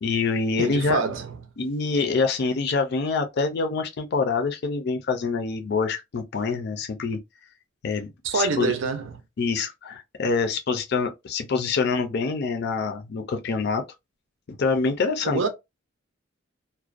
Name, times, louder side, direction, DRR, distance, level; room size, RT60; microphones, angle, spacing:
voice 1, 0.0-1.0 1.6-7.2 7.8-8.7 9.4-13.8 14.6-15.5, left 4 dB, 55° left, 0.4 m, -25 dB
voice 2, 0.6-1.4 8.2-9.2 15.2-15.5, right 4 dB, 70° right, 0.5 m, -26 dB
2.4 x 2.1 x 2.4 m
head